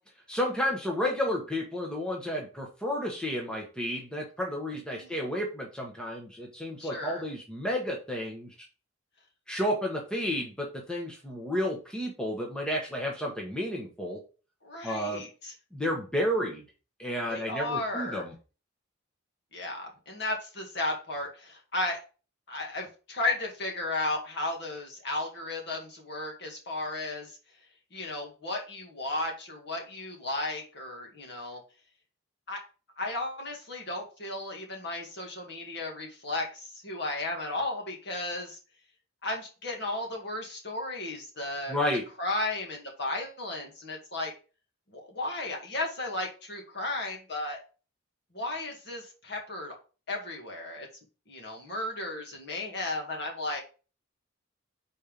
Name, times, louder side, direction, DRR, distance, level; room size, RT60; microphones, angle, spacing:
voice 1, 0.3-8.5 9.5-14.2 14.8-15.2 15.7-16.6 17.0-18.3 41.7-42.0, equal, 5° left, -1 dB, 1.0 m, -31 dB
voice 2, 6.8-7.2 14.6-15.5 17.3-18.2 19.5-22.0 22.5-27.4 27.9-31.6 32.5-32.6 33.0-38.6 39.2-41.8 42.2-44.3 44.9-47.6 48.3-49.8 50.1-50.9 51.3-53.6, left 2 dB, 50° left, 1 dB, 2.0 m, -34 dB
5.4 x 4.3 x 5.1 m, 0.34 s
head